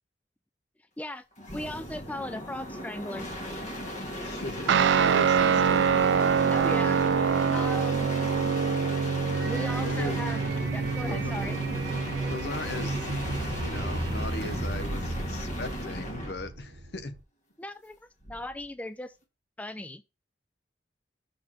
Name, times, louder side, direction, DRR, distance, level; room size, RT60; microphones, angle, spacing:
sound 1, 1.4-16.4 18.2-18.7, equal, 45° left, 1.8 m, -37 dB
voice 1, 1.5-3.3 6.5-7.0 7.5-8.1 9.4-10.4 10.7-11.6 17.6-18.0 18.3-19.1 19.6-20.0, left 1 dB, 10° left, 0.3 m, -37 dB
voice 2, 4.2-5.9 9.8-10.2 11.1-11.3 12.3-13.1 13.6-17.1, left 2 dB, 65° left, 1.0 m, -38 dB
Guitar, 4.7-13.5, right 6 dB, 80° right, 0.4 m, -26 dB
sound 2, 9.3-17.2, right 2 dB, 65° right, 0.9 m, -35 dB
5.7 x 4.3 x 6.1 m
head